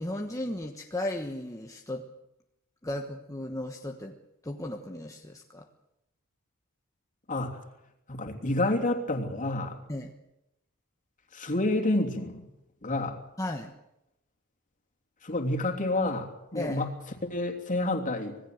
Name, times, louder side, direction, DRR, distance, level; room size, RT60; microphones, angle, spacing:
voice 1, 0.0-2.0 2.8-4.1 4.4-5.7 9.9-10.1 13.4-13.7 16.5-16.8, left 1 dB, 15° left, 3 dB, 1.2 m, -35 dB
voice 2, 7.3-7.6 8.1-9.8 11.3-12.5 12.8-13.2 15.2-16.9 17.2-18.4, left 2 dB, 35° left, 3 dB, 3.1 m, -29 dB
26.0 x 18.0 x 7.9 m, 0.88 s
head